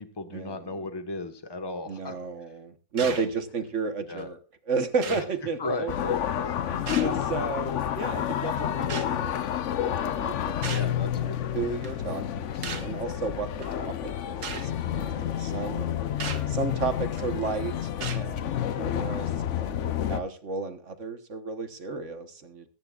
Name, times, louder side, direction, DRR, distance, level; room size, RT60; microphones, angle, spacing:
voice 1, 0.0-2.1 3.0-3.2 4.1-4.3 5.0-5.2 5.6-6.6 10.7-11.7, left 3 dB, 15° left, 8 dB, 1.2 m, -36 dB
voice 2, 1.9-4.4 4.7-5.9 6.6-9.4 9.8-13.5 13.8-15.9 16.5-22.6, right 4 dB, 50° right, 9 dB, 1.5 m, -33 dB
sound 1, 3.0-3.3 4.2-4.3 5.0-5.3 6.9-7.3 8.9-9.1 10.6-11.0 11.8-12.0 12.6-13.0 13.6-13.7 14.4-14.7 16.2-16.5 17.2-17.4 18.0-18.3, right 6 dB, 85° right, 1.9 m, -36 dB
sound 2, 5.9-20.2, left 10 dB, 60° left, 0.9 m, -29 dB
22.0 x 10.5 x 2.4 m, 0.36 s
omnidirectional pair, 1.6 m